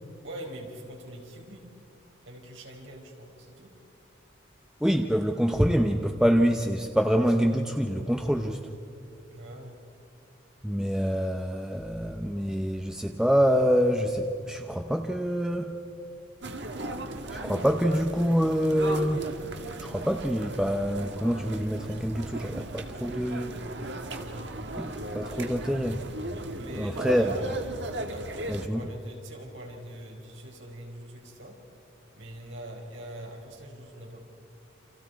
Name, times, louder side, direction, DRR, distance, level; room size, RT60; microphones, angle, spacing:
voice 1, 0.2-1.7 2.2-3.7 9.3-9.8 24.1-24.7 26.6-27.5 28.1-31.6 32.1-34.2, right 1 dB, 85° right, 0 dB, 5.0 m, -43 dB
voice 2, 4.8-8.7 10.6-15.8 17.3-19.3 19.8-23.6 24.8-26.1 26.6-27.4 28.5-28.9, equal, 5° right, 4 dB, 0.7 m, -26 dB
sound 1, 16.4-28.7, right 1 dB, 65° right, 1.6 m, -37 dB
29.0 x 27.5 x 4.7 m, 2.5 s
head